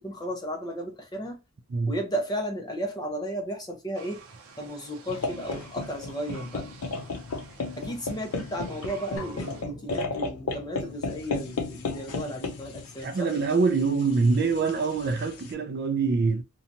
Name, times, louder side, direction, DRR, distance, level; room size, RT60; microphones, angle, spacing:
voice 1, 0.0-1.4 1.9-4.2 4.6-6.7 7.8-13.3, right 1 dB, 20° left, 0.6 m, -34 dB
sound 1, 3.9-9.6, right 4 dB, 80° right, 0.7 m, -50 dB
sound 2, 5.1-15.5, left 3 dB, 85° left, 0.5 m, -35 dB
sound 3, 9.2-11.0, left 1 dB, 65° left, 0.9 m, -46 dB
voice 2, 13.0-16.4, right 4 dB, 45° right, 0.3 m, -24 dB
2.7 x 2.3 x 2.6 m
head